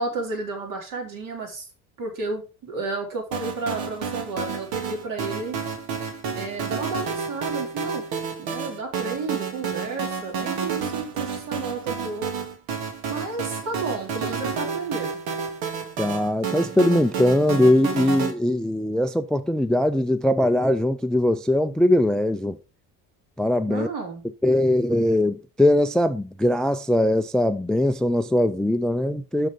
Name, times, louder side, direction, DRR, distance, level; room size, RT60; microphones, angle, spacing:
voice 1, 0.0-1.7 2.0-5.6 6.4-8.0 8.4-12.3 13.1-15.2 23.7-24.2, right 3 dB, 65° right, 3.9 m, -32 dB
sound 1, 3.3-18.3, right 6 dB, 85° right, 2.0 m, -30 dB
voice 2, 16.0-22.6 23.4-23.9 24.4-29.5, left 1 dB, ahead, 0.3 m, -21 dB
6.5 x 6.5 x 5.0 m
cardioid pair, 125°, 35 cm